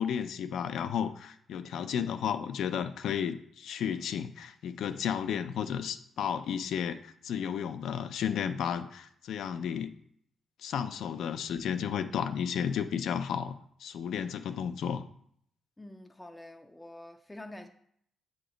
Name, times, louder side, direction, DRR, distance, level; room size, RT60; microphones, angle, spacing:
voice 1, 0.0-9.9 10.6-15.0, left 8 dB, 80° left, 0.4 m, -33 dB
voice 2, 15.8-17.7, left 1 dB, 10° left, 0.4 m, -47 dB
7.0 x 2.9 x 4.9 m
cardioid pair, 110°, 0 cm